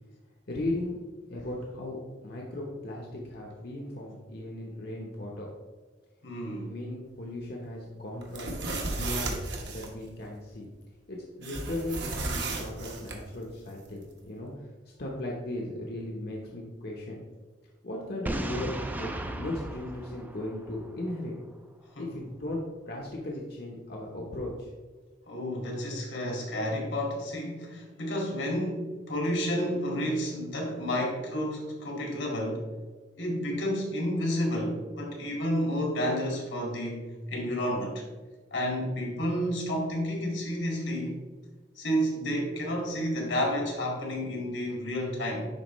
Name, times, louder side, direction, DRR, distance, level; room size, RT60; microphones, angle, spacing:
voice 1, 0.5-5.5 6.7-8.5 8.9-10.7 11.1-14.7 15.0-17.2 17.8-21.3 22.0-24.7, left 1 dB, 55° left, -2 dB, 0.9 m, -37 dB
voice 2, 6.2-6.7 21.9-22.2 25.3-32.7 33.2-38.0 38.5-41.2 41.8-45.5, equal, 85° left, -1 dB, 2.2 m, -30 dB
sound 1, 8.2-9.9 11.4-13.2, right 2 dB, 60° right, 1.2 m, -34 dB
Boom, 18.3-21.1, right 1 dB, 10° right, 0.4 m, -35 dB
10.5 x 4.2 x 3.1 m, 1.4 s
head